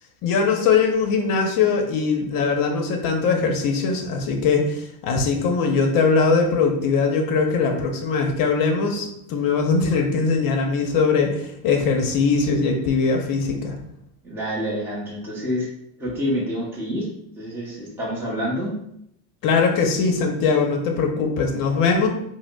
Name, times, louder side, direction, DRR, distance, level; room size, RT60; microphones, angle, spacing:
voice 1, 0.2-13.8 19.4-22.1, left 4 dB, 45° left, 4 dB, 0.7 m, -21 dB
voice 2, 14.2-15.7 16.0-17.1 17.4-18.7, equal, 5° right, -6 dB, 0.7 m, -27 dB
4.7 x 2.0 x 2.3 m, 0.74 s
supercardioid pair, 125°, 47 cm